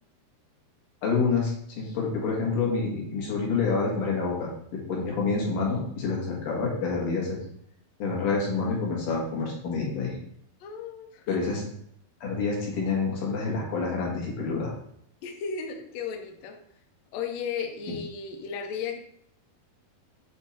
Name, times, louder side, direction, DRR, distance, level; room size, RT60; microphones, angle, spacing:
voice 1, 1.0-7.4 8.0-10.2 11.3-11.6 12.2-14.7, left 4 dB, 60° left, -2 dB, 3.1 m, -28 dB
voice 2, 10.6-11.4 15.2-16.6 17.1-19.0, left 6 dB, 90° left, 3 dB, 1.5 m, -34 dB
8.8 x 3.7 x 4.2 m, 0.69 s
omnidirectional pair, 4.5 m